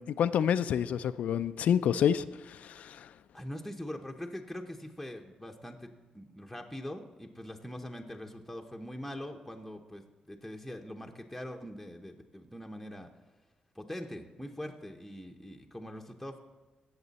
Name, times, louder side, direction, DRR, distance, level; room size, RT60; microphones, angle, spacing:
voice 1, 0.0-3.1, left 8 dB, 75° left, 12 dB, 0.3 m, -28 dB
voice 2, 3.3-5.9 6.1-13.1 13.7-16.4, left 1 dB, ahead, 1 dB, 0.8 m, -42 dB
16.5 x 6.6 x 4.1 m, 1.2 s
cardioid pair, 110°, 2 cm